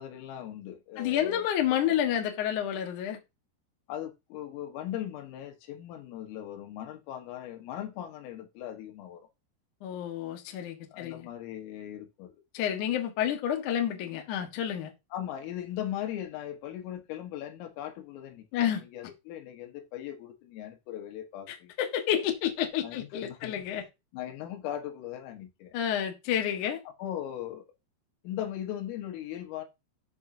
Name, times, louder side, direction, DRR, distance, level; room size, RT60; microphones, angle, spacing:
voice 1, 0.0-2.0 3.9-9.3 10.9-12.4 15.1-21.7 22.8-23.6 24.1-25.8 27.0-27.6 28.2-29.7, left 11 dB, 80° left, 4.1 m, -39 dB
voice 2, 1.0-3.2 9.8-11.3 12.5-14.9 18.5-18.8 21.5-23.8 25.7-26.8, left 10 dB, 65° left, 2.0 m, -29 dB
13.0 x 6.2 x 2.8 m
omnidirectional pair, 5.9 m